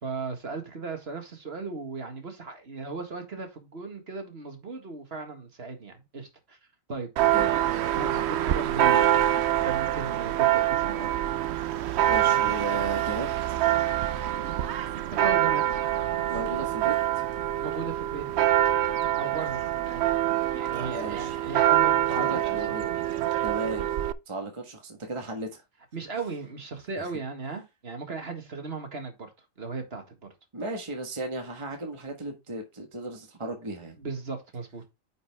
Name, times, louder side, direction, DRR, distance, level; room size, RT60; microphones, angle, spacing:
voice 1, 0.0-6.6 6.9-7.1 7.9-9.1 9.6-11.2 15.2-16.1 17.6-18.5 19.2-19.6 19.8-20.0 20.5-22.4 22.7-22.8 25.9-29.3 29.6-30.3 34.0-34.9, right 4 dB, 50° right, 2.1 m, -36 dB
Church bell, 7.2-24.1, right 12 dB, 65° right, 0.8 m, -25 dB
voice 2, 12.0-13.4 16.3-16.9 20.9-21.3 22.1-23.0 23.4-23.9 24.3-25.6 27.0-27.1 30.5-33.9, right 2 dB, 20° right, 1.5 m, -35 dB
9.6 x 5.3 x 3.4 m
omnidirectional pair, 1.4 m